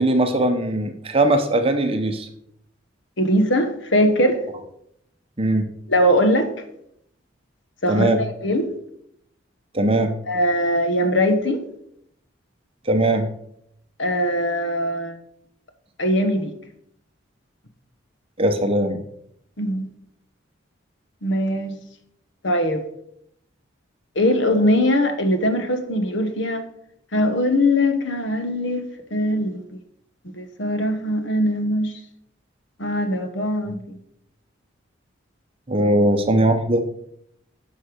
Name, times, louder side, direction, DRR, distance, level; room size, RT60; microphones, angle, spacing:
voice 1, 0.0-2.3 5.4-5.7 7.9-8.2 9.7-10.1 12.9-13.3 18.4-19.0 35.7-36.8, right 1 dB, 30° right, 7 dB, 0.8 m, -20 dB
voice 2, 3.2-4.4 5.9-6.5 7.8-8.1 8.4-8.7 10.3-11.6 14.0-15.2 16.0-16.5 19.6-19.9 21.2-21.8 22.4-22.8 24.1-26.6 27.1-29.6 30.4-31.9 32.8-33.9, equal, 65° left, 8 dB, 1.1 m, -21 dB
10.5 x 5.6 x 5.1 m, 0.74 s
head